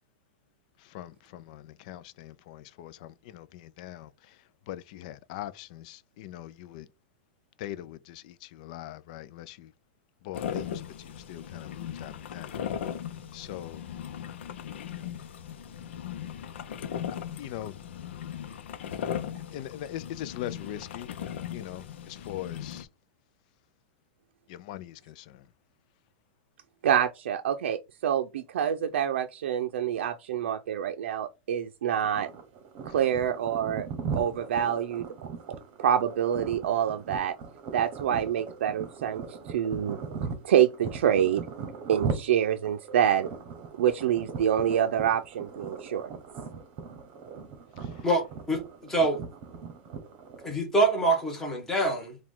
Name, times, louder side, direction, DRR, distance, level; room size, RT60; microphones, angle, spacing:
voice 1, 0.8-4.1 4.7-6.9 7.6-9.7 10.2-12.5 13.3-13.8 17.4-17.8 19.5-21.1 21.5-22.9 24.5-25.4 47.8-47.9, left 12 dB, 40° left, 0.4 m, -41 dB
sound 1, 10.3-22.8, left 9 dB, 80° left, 0.6 m, -38 dB
voice 2, 26.8-32.3 32.8-33.9 34.1-35.3 35.8-37.3 37.7-40.0 40.4-41.4 41.9-43.3 43.8-46.1, right 9 dB, 80° right, 0.6 m, -26 dB
sound 2, 32.0-50.5, right 5 dB, 30° right, 1.0 m, -39 dB
voice 3, 48.0-49.2 50.4-52.2, right 2 dB, 5° left, 1.1 m, -26 dB
4.7 x 2.3 x 3.7 m
supercardioid pair, 170°, 6 cm